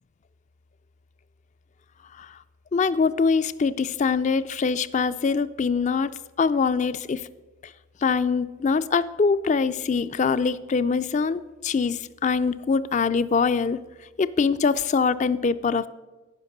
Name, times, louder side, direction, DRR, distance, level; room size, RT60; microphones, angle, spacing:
voice 1, 2.7-6.1 6.4-7.3 8.0-13.8 14.2-15.9, left 5 dB, 35° left, 16 dB, 0.3 m, -23 dB
14.5 x 5.9 x 6.6 m, 1.2 s
head